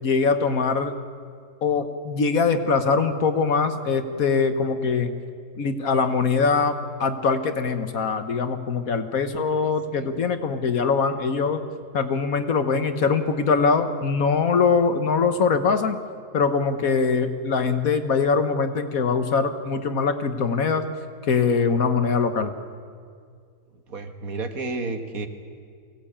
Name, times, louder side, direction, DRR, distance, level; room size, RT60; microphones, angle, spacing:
voice 1, 0.0-0.9 1.6-5.1 5.6-6.7 7.0-11.6 11.9-16.0 16.3-20.8 21.3-22.5, left 5 dB, 60° left, 8 dB, 1.5 m, -22 dB
voice 2, 9.6-10.2 23.9-25.3, right 3 dB, 60° right, 6 dB, 1.9 m, -32 dB
23.5 x 18.0 x 8.7 m, 2.1 s
omnidirectional pair, 1.7 m